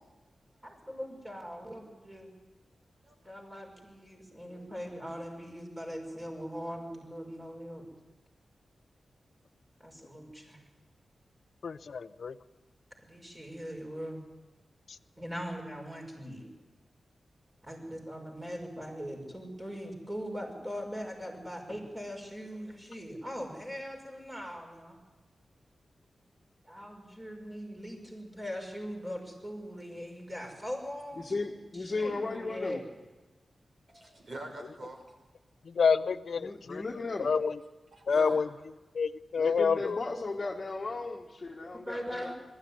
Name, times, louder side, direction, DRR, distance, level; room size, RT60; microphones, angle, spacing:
voice 1, 0.6-2.3 3.2-7.9 9.8-10.6 13.0-14.2 15.2-16.5 17.7-25.0 26.6-31.3 31.8-32.8 41.9-42.3, equal, 10° right, 1 dB, 5.7 m, -40 dB
voice 2, 3.0-3.4 4.3-5.1 6.4-6.5 33.9-35.1 37.9-38.4 42.2-42.3, right 1 dB, 45° right, 2 dB, 5.9 m, -45 dB
voice 3, 11.6-12.4 14.9-15.0 35.6-36.8 37.2-37.6 38.1-38.5 38.9-40.0, left 5 dB, 65° left, 11 dB, 0.7 m, -28 dB
voice 4, 31.2-32.8 36.4-37.3 39.4-42.3, left 3 dB, 35° left, -1 dB, 1.7 m, -36 dB
22.0 x 14.5 x 9.7 m, 1.2 s
wide cardioid pair, 130°, 0 cm